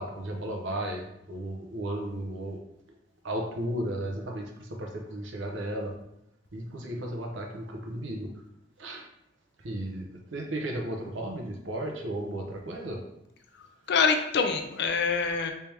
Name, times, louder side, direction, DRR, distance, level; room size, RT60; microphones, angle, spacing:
voice 1, 0.0-2.6 3.2-5.9 6.5-8.3 8.8-9.0 9.6-13.0, right 1 dB, 70° right, 1 dB, 0.8 m, -34 dB
voice 2, 13.6-15.5, left 5 dB, 60° left, 5 dB, 0.4 m, -26 dB
3.3 x 3.3 x 2.9 m, 0.81 s
head